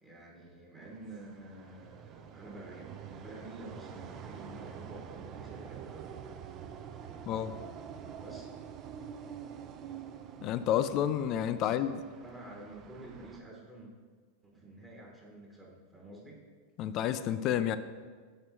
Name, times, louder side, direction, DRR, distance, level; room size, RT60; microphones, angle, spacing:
voice 1, 0.0-6.1 7.0-7.1 7.9-8.5 11.6-11.8 12.2-13.9 14.4-16.4, right 2 dB, 10° right, -3 dB, 1.0 m, -49 dB
sound 1, 0.8-13.4, right 8 dB, 35° right, 0.4 m, -47 dB
voice 2, 7.3-7.6 10.4-12.0 16.8-17.8, left 10 dB, 45° left, 12 dB, 0.3 m, -30 dB
6.2 x 4.3 x 3.5 m, 1.5 s
hypercardioid pair, 120°, 0 cm